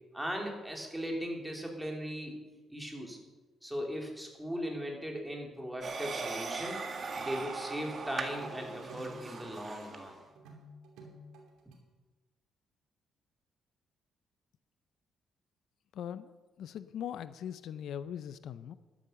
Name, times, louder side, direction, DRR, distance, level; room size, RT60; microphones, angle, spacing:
voice 1, 0.1-2.4 2.7-3.2 3.6-6.8 7.2-10.1, equal, 5° right, 1 dB, 3.4 m, -38 dB
sound 1, 5.8-10.1, right 4 dB, 45° right, 1.9 m, -39 dB
sound 2, 7.0-7.3 7.6-7.7 8.0-9.4 9.7-9.8 10.1-11.8, right 1 dB, 90° right, 2.9 m, -52 dB
voice 2, 15.9-18.8, left 9 dB, 75° left, 14 dB, 0.5 m, -41 dB
12.5 x 10.5 x 6.9 m, 1.3 s
cardioid pair, 90°, 0 cm